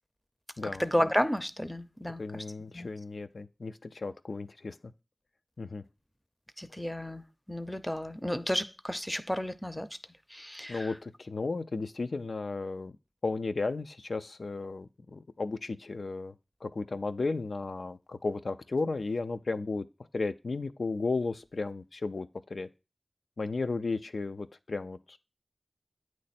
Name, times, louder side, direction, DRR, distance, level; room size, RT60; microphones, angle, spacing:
voice 1, 0.8-2.4 2.7-2.9 6.6-7.2 7.5-9.9 10.3-10.9, equal, 10° left, 0.5 m, -32 dB
voice 2, 2.2-4.8 5.6-5.8 10.7-13.0 13.2-16.3 16.6-19.8 20.1-22.7 23.4-25.2, left 3 dB, 90° left, 0.3 m, -34 dB
8.6 x 3.2 x 4.1 m
wide cardioid pair, 50°, 0 cm